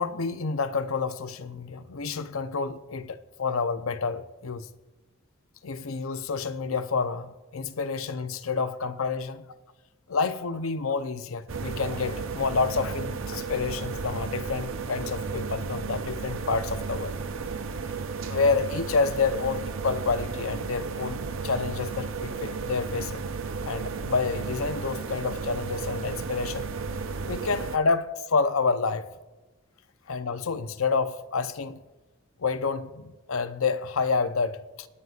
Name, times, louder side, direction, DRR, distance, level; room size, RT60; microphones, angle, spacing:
voice 1, 0.0-4.7 5.6-9.5 10.1-17.2 18.2-23.2 23.6-26.7 27.3-29.1 30.1-31.8 32.4-34.9, left 4 dB, 85° left, 0.7 m, -29 dB
sound 1, 11.5-27.8, right 4 dB, 75° right, 0.7 m, -33 dB
26.5 x 9.5 x 2.5 m
head